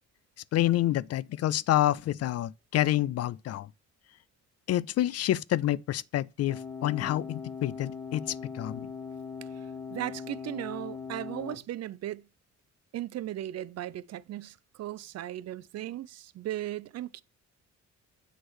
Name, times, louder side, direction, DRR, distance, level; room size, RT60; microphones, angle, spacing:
voice 1, 0.5-3.7 4.7-8.9, left 13 dB, 55° left, 0.4 m, -28 dB
sound 1, 6.5-11.6, left 5 dB, 10° left, 1.6 m, -40 dB
voice 2, 9.4-12.3 12.9-17.2, right 13 dB, 55° right, 0.5 m, -37 dB
8.0 x 3.2 x 6.2 m
cardioid pair, 90°, 30 cm